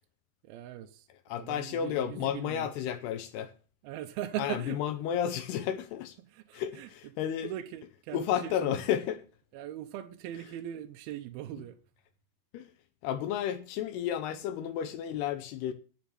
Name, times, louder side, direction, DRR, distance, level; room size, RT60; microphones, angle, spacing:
voice 1, 0.4-1.1 1.3-2.7 3.8-4.8 6.3-6.9 7.4-8.8 9.5-11.8, right 12 dB, 75° right, 2.5 m, -40 dB
voice 2, 1.3-3.5 4.4-6.2 6.5-7.5 8.1-9.3 12.5-12.7 13.0-15.7, left 9 dB, 80° left, 2.8 m, -32 dB
9.5 x 7.3 x 9.1 m
omnidirectional pair, 4.8 m